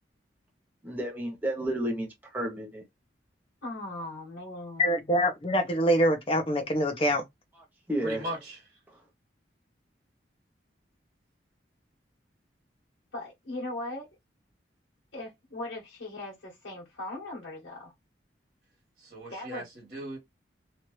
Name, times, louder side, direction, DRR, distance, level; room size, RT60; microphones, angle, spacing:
voice 1, 0.8-2.8 7.9-8.4, right 1 dB, 10° right, 0.8 m, -32 dB
voice 2, 3.6-5.0 13.1-14.1 15.1-17.9 19.3-19.6, left 2 dB, 90° left, 1.1 m, -39 dB
voice 3, 4.8-7.2, equal, 30° left, 0.7 m, -25 dB
voice 4, 8.0-8.8 19.0-20.2, right 1 dB, 45° right, 1.4 m, -39 dB
2.9 x 2.5 x 3.0 m
head